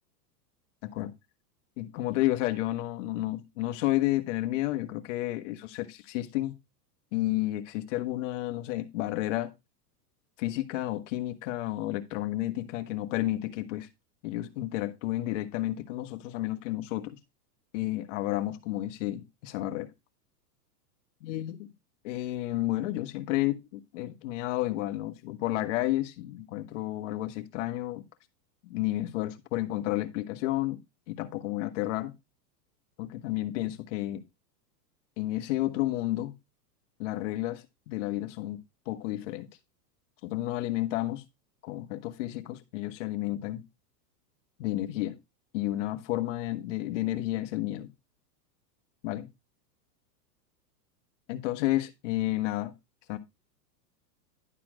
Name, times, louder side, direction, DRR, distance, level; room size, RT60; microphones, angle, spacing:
voice 1, 1.8-6.5 7.1-9.5 10.4-13.9 14.2-17.2 17.7-19.9 21.2-21.7 22.0-28.0 28.6-30.8 31.1-32.1 33.0-34.2 35.2-36.3 37.0-38.6 38.9-39.5 40.2-41.2 41.6-43.6 44.6-45.2 45.5-47.9 49.0-49.3 51.3-52.7 53.1-53.2, left 16 dB, 45° left, 1.2 m, -31 dB
11.0 x 4.3 x 4.9 m
supercardioid pair, 150°, 49 cm